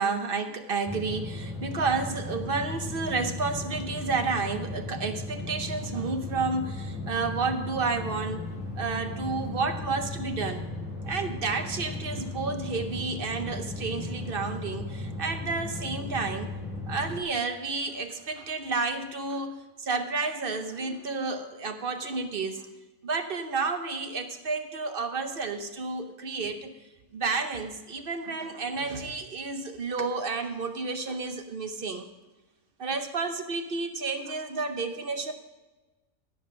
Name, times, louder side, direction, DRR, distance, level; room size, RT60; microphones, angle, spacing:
voice 1, 0.0-8.5 8.8-10.7 11.0-16.5 16.9-22.7 23.0-26.7 27.1-32.1 32.8-35.3, right 4 dB, 45° right, 8 dB, 0.9 m, -31 dB
sound 1, 0.8-17.2, left 2 dB, ahead, 4.5 m, -36 dB
16.0 x 5.7 x 6.3 m, 1.1 s
omnidirectional pair, 1.5 m